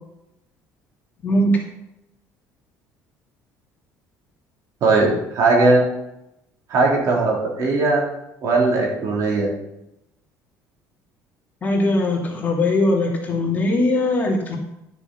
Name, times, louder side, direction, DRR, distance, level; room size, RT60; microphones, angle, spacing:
voice 1, 1.2-1.6 11.6-14.6, left 1 dB, 25° left, -1 dB, 2.6 m, -20 dB
voice 2, 4.8-5.8 6.7-8.0 8.4-9.5, right 3 dB, 55° right, -2 dB, 4.0 m, -18 dB
12.0 x 7.0 x 5.7 m, 0.87 s
cardioid pair, 135°, 7 cm